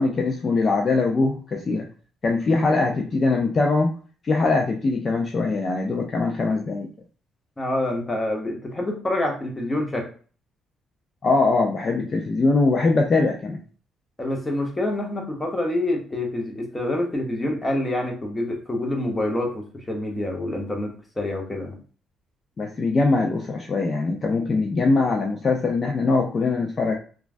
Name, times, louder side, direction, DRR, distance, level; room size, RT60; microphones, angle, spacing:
voice 1, 0.0-1.9 2.2-3.9 4.2-6.9 11.2-13.6 22.6-26.9, left 3 dB, 40° left, 2 dB, 0.4 m, -22 dB
voice 2, 7.6-10.1 14.2-21.8, left 1 dB, 20° left, 1 dB, 0.9 m, -27 dB
3.0 x 2.3 x 2.5 m, 0.40 s
cardioid pair, 90°, 0 cm